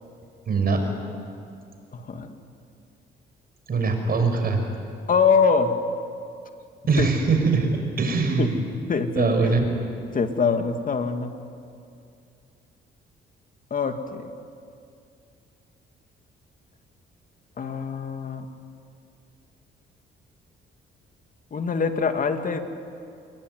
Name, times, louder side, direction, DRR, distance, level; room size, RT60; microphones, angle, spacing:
voice 1, 0.5-0.8 3.7-4.6 6.9-7.7 8.0-8.5 9.2-9.6, right 4 dB, 50° right, 4 dB, 5.9 m, -22 dB
voice 2, 1.9-2.4 3.7-3.8 5.1-5.7 7.0-7.1 8.4-9.5 10.1-11.3 13.7-14.3 17.6-18.5 21.5-22.6, left 5 dB, 45° left, 6 dB, 2.5 m, -24 dB
28.5 x 21.5 x 9.8 m, 2.4 s
cardioid pair, 90°, 20 cm